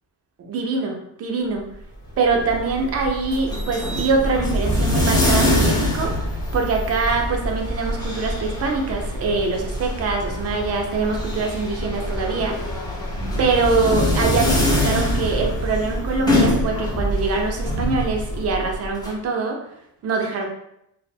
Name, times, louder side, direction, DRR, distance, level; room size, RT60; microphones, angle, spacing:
voice 1, 0.4-1.7 2.2-6.1 6.5-12.6 13.4-19.6 20.0-20.5, right 4 dB, 40° right, 2 dB, 0.5 m, -24 dB
sound 1, 2.0-19.1, left 1 dB, 10° left, 0.5 m, -24 dB
2.7 x 2.0 x 2.6 m, 0.78 s
cardioid pair, 145°, 38 cm